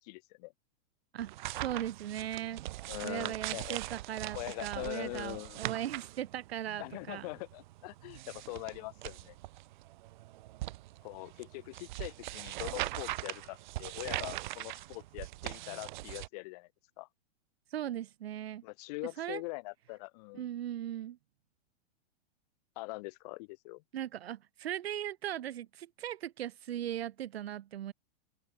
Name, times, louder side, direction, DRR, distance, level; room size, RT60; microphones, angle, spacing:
voice 1, 0.0-0.5 2.9-3.8 4.3-5.6 6.8-9.4 11.0-16.7 17.0-17.1 18.6-20.5 22.8-23.8, left 25 dB, 40° left, 4.3 m, -42 dB
voice 2, 1.1-2.6 3.0-7.3 17.7-18.6 19.2-19.4 20.3-21.2 23.9-27.9, right 11 dB, 90° right, 2.8 m, -38 dB
sound 1, 1.2-16.3, right 17 dB, 50° right, 4.2 m, -41 dB
supercardioid pair, 170°, 30 cm